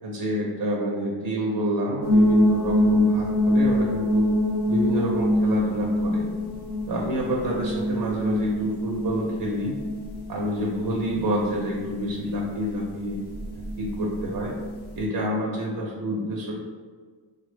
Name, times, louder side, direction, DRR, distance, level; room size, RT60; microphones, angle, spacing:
voice 1, 0.0-4.3 4.7-6.3 6.9-9.8 10.3-13.2 13.6-14.5 14.9-16.5, equal, 55° right, -3 dB, 0.6 m, -28 dB
sound 1, 2.0-15.0, equal, 40° left, 0.8 m, -25 dB
3.4 x 2.1 x 3.2 m, 1.5 s
cardioid pair, 90°, 44 cm